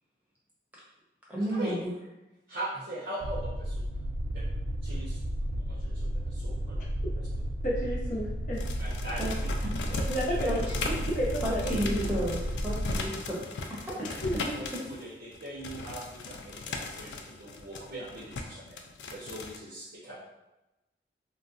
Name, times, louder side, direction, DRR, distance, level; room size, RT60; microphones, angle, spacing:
voice 1, 1.3-1.9 9.2-9.3 9.6-9.7 10.5-10.6 11.4-13.4, equal, 10° right, -7 dB, 0.8 m, -32 dB
voice 2, 2.5-3.8 4.3-4.4 4.8-5.2 5.5-6.8 7.2-7.3 8.8-9.3 10.3-10.5 14.5-18.8 19.1-20.1, right 1 dB, 65° right, -7 dB, 0.8 m, -40 dB
sound 1, 3.2-13.0, equal, 45° right, 0.3 m, -33 dB
voice 3, 7.6-8.6 9.9-12.1 14.0-14.5, equal, 45° left, -4 dB, 0.6 m, -32 dB
sound 2, 8.5-15.0 15.3-19.6, left 3 dB, 85° left, 0.4 m, -38 dB
3.9 x 2.1 x 2.4 m, 0.99 s
head